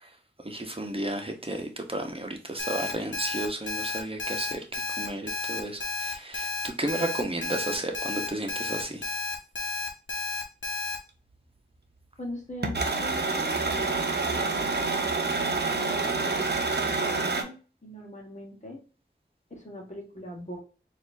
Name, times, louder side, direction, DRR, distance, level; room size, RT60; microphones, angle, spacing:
voice 1, 0.4-9.1, right 1 dB, 30° right, 1.0 m, -33 dB
Alarm, 2.6-11.0, left 3 dB, 90° left, 0.9 m, -32 dB
voice 2, 12.2-15.2 15.7-18.8 19.5-20.6, left 1 dB, 40° left, 1.5 m, -42 dB
sound 1, 12.6-17.4, right 3 dB, 60° right, 0.8 m, -27 dB
4.2 x 2.7 x 2.7 m
wide cardioid pair, 50°, 19 cm